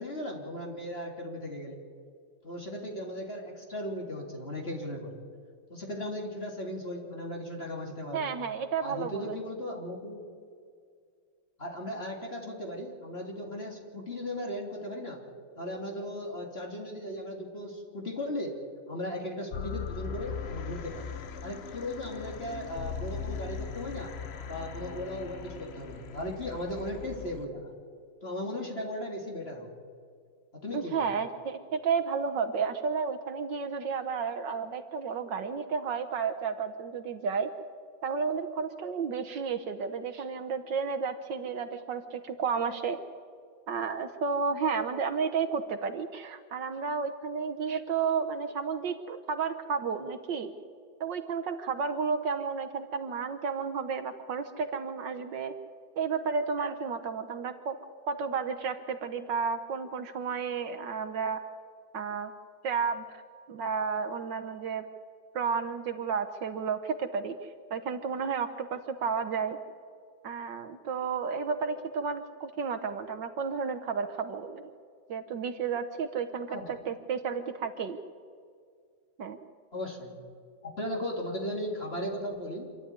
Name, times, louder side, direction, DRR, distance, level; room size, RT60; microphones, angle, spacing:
voice 1, 0.0-1.8 2.4-5.2 5.7-8.3 8.8-10.2 11.6-15.2 15.6-18.6 18.9-21.1 21.4-24.1 24.5-27.7 28.2-29.7 30.5-31.1 76.5-76.7 79.7-80.1 80.8-82.7, left 1 dB, 30° left, 0 dB, 3.4 m, -37 dB
voice 2, 8.1-9.4 30.7-37.5 38.0-43.0 43.7-50.5 51.0-55.5 56.0-57.8 58.1-61.4 61.9-62.3 62.6-63.0 63.5-64.8 65.3-69.6 70.2-74.6 75.1-78.0 79.2-79.4, right 5 dB, 65° right, 8 dB, 1.6 m, -32 dB
sound 1, 19.5-27.4, left 6 dB, 60° left, 0.7 m, -39 dB
26.5 x 12.5 x 9.5 m, 2.1 s
omnidirectional pair, 2.2 m